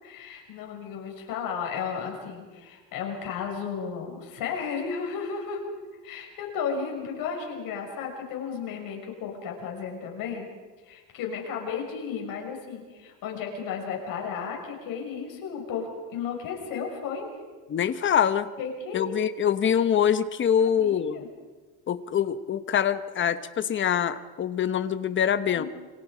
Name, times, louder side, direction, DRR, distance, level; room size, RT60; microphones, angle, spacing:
voice 1, 0.0-5.6 6.0-10.5 10.8-17.3 18.6-19.2 20.6-21.3 25.5-25.7, left 6 dB, 75° left, 1 dB, 6.2 m, -34 dB
voice 2, 17.7-18.5 18.9-21.2 21.9-25.6, left 8 dB, 35° left, 11 dB, 1.1 m, -24 dB
28.5 x 25.0 x 5.1 m, 1.4 s
cardioid pair, 165°, 35 cm